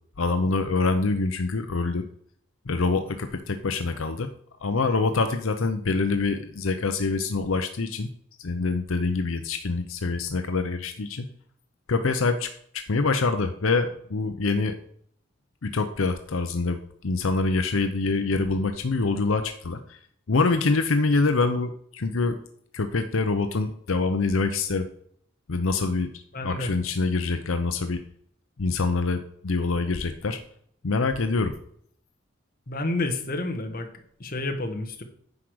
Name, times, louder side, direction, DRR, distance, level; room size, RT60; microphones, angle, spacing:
voice 1, 0.2-2.0 2.7-4.3 4.6-8.1 8.4-11.3 11.9-14.8 15.6-20.0 20.3-22.4 22.7-24.9 25.5-28.0 28.6-30.4 30.8-31.5, left 3 dB, 80° left, 8 dB, 0.7 m, -25 dB
voice 2, 26.3-26.7 32.7-33.9 34.2-35.0, left 2 dB, 45° left, 5 dB, 1.3 m, -29 dB
9.8 x 4.9 x 6.3 m, 0.65 s
head